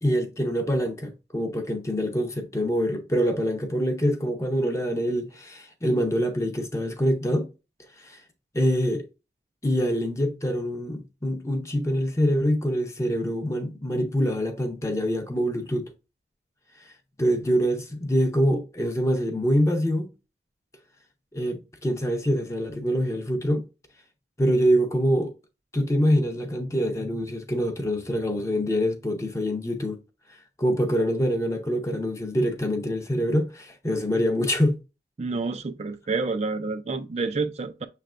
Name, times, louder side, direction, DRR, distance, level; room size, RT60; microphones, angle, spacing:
voice 1, 0.0-7.5 8.0-8.2 8.5-9.1 9.6-15.9 16.8-16.9 17.2-20.1 21.3-23.6 24.4-25.3 25.7-30.0 30.3-34.8, equal, 15° left, 0.6 m, -25 dB
voice 2, 35.2-37.9, right 4 dB, 35° right, 0.3 m, -29 dB
6.6 x 3.2 x 2.4 m
head